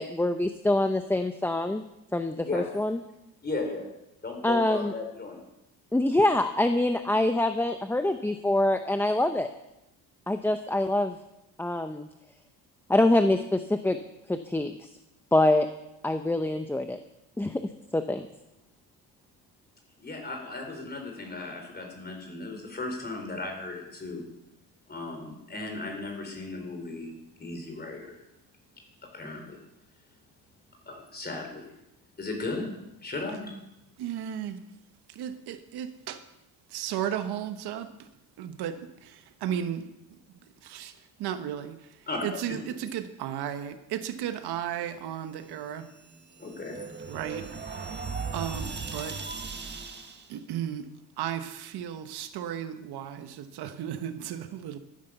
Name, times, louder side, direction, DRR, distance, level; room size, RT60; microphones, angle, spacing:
voice 1, 0.0-1.8 2.1-3.0 4.4-4.9 5.9-9.5 10.3-11.2 11.6-12.1 12.9-14.0 14.3-14.8 15.3-15.7 16.0-17.0 17.4-17.6 17.9-18.3, left 1 dB, 5° left, 7 dB, 0.6 m, -25 dB
voice 2, 3.4-3.9 4.2-5.4 20.0-24.2 24.9-27.1 27.4-28.2 29.1-29.6 30.9-31.7 32.2-32.7 33.0-33.5 42.1-42.2 43.2-43.3 46.4-46.7, left 3 dB, 25° left, 2 dB, 4.5 m, -36 dB
voice 3, 34.0-34.6 35.1-36.2 36.7-38.1 38.4-39.9 40.6-40.9 41.2-45.9 47.1-47.5 48.3-49.2 50.3-50.9 51.2-54.8, right 10 dB, 75° right, 9 dB, 1.3 m, -34 dB
sound 1, 45.8-50.3, right 4 dB, 25° right, 1.6 m, -38 dB
14.0 x 10.5 x 6.8 m, 0.90 s
cardioid pair, 120°, 40 cm